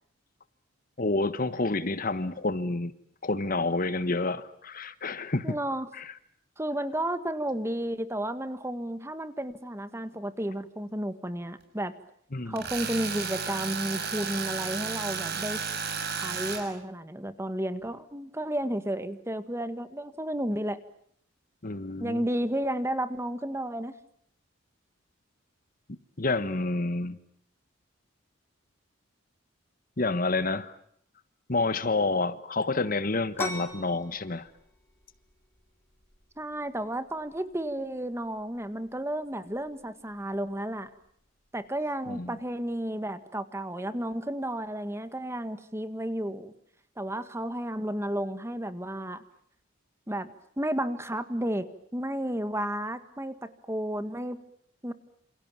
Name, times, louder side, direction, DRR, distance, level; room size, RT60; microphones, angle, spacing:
voice 1, 1.0-2.9 3.2-5.6 5.9-6.1 12.3-12.6 21.6-22.2 26.2-27.2 30.0-30.7 31.5-34.5 42.1-42.3, left 3 dB, 45° left, 1.4 m, -29 dB
voice 2, 5.4-5.9 6.6-11.9 12.5-15.6 16.2-20.8 22.0-23.9 36.4-40.9 41.5-46.5 47.0-49.2 50.1-50.3 50.6-54.4 54.8-54.9, right 1 dB, 15° right, 1.7 m, -32 dB
Tools, 12.6-16.6, right 6 dB, 55° right, 6.8 m, -33 dB
sound 1, 33.3-42.7, left 1 dB, 10° left, 4.5 m, -45 dB
28.5 x 28.0 x 7.4 m
head